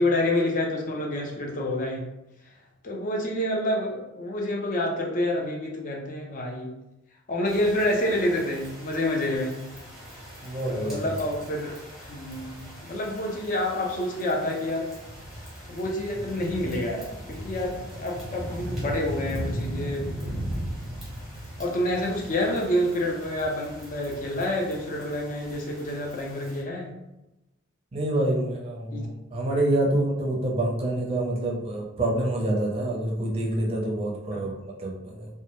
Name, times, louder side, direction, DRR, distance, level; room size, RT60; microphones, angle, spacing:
voice 1, 0.0-2.1 2.8-6.7 7.3-9.6 10.7-11.8 12.1-14.9 15.7-20.2 21.6-26.9 28.9-29.1 34.3-34.4, left 1 dB, 40° left, 0 dB, 0.5 m, -28 dB
sound 1, 7.5-26.6, right 1 dB, ahead, 0.8 m, -38 dB
voice 2, 10.4-11.1 27.9-35.3, right 1 dB, 30° right, -2 dB, 0.5 m, -27 dB
2.1 x 2.0 x 2.9 m, 0.93 s
head